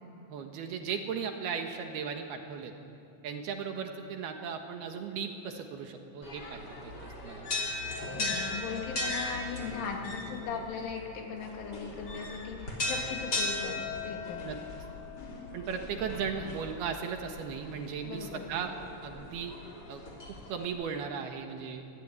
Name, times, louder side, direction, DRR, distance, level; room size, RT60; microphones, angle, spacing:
voice 1, 0.3-2.7 3.2-7.5 14.4-14.6 15.5-18.7 19.0-19.5 19.9-20.0 20.3-21.8, right 6 dB, 65° right, 5 dB, 3.1 m, -37 dB
sound 1, 6.2-20.6, left 2 dB, 25° left, 3.0 m, -38 dB
voice 2, 8.2-14.5 18.0-18.5, left 6 dB, 90° left, 1 dB, 5.3 m, -38 dB
25.0 x 19.5 x 9.8 m, 2.6 s
omnidirectional pair, 5.4 m